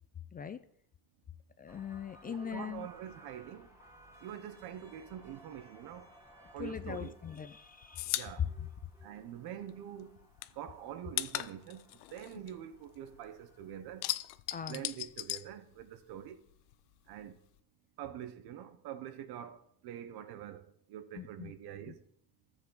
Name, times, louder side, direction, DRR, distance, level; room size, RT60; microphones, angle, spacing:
voice 1, 1.6-2.9 6.6-8.7 14.5-14.8 21.1-21.5 21.9-22.0, left 8 dB, 25° left, 0.4 m, -40 dB
sound 1, 1.7-13.8, equal, 5° right, 2.8 m, -61 dB
voice 2, 2.2-3.7 4.2-6.1 6.5-7.1 8.1-8.5 9.0-10.2 10.5-11.8 12.1-14.0 14.7-16.4 17.1-17.4 18.0-22.0, right 10 dB, 60° right, 1.0 m, -45 dB
sound 2, 6.9-9.7 10.0-13.3 13.6-16.2 16.5-17.6, left 18 dB, 80° left, 0.7 m, -39 dB
13.5 x 7.3 x 3.9 m
cardioid pair, 115°, 42 cm